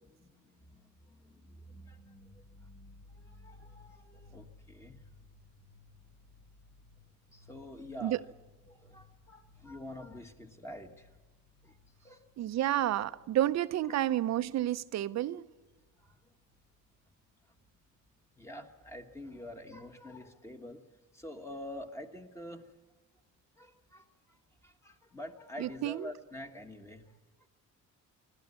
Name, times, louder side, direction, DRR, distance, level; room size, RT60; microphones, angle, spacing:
voice 1, 0.0-2.7 3.1-5.0 7.3-8.2 8.7-11.2 11.6-12.2 12.7-12.8 13.9-14.1 16.0-16.3 17.4-17.5 18.4-20.8 21.1-22.7 23.6-27.5, left 1 dB, 10° left, 1.3 m, -47 dB
sound 1, 1.9-17.0 17.2-18.4 18.7-18.8 19.2-19.8, left 3 dB, 65° left, 5.6 m, -60 dB
voice 2, 12.4-15.4 25.6-26.1, right 13 dB, 55° right, 0.7 m, -30 dB
26.5 x 12.5 x 9.6 m
cardioid pair, 165°, 31 cm